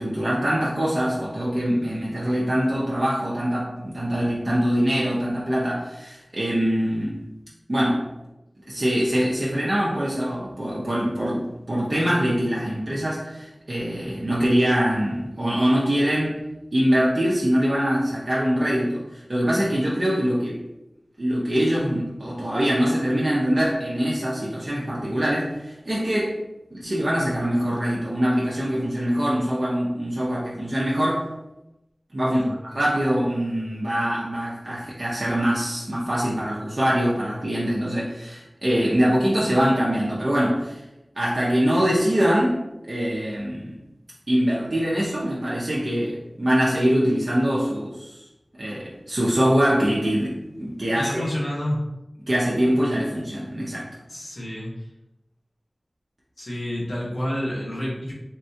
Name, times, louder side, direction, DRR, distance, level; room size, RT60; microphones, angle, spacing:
voice 1, 0.0-7.2 7.7-8.1 8.7-16.4 16.7-20.6 21.2-26.4 26.7-31.3 32.1-32.4 32.7-40.8 41.2-42.6 42.9-43.8 44.3-48.2 48.6-51.2 52.3-53.9, equal, 55° right, -7 dB, 0.6 m, -23 dB
voice 2, 32.2-32.6 50.9-51.8 54.1-54.7 56.4-58.1, left 1 dB, 90° left, -6 dB, 1.0 m, -29 dB
3.6 x 2.2 x 2.7 m, 0.94 s
wide cardioid pair, 60°, 0 cm